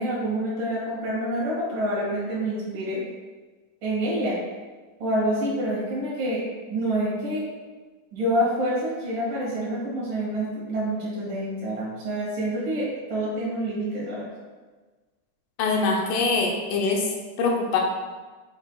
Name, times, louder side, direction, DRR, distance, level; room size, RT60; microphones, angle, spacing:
voice 1, 0.0-3.0 3.8-4.3 5.0-6.4 6.7-7.4 8.1-14.3, right 1 dB, 85° right, -8 dB, 3.7 m, -27 dB
voice 2, 15.6-17.1 17.4-17.8, left 4 dB, 80° left, 0 dB, 2.3 m, -23 dB
8.0 x 5.7 x 2.4 m, 1.3 s
omnidirectional pair, 3.6 m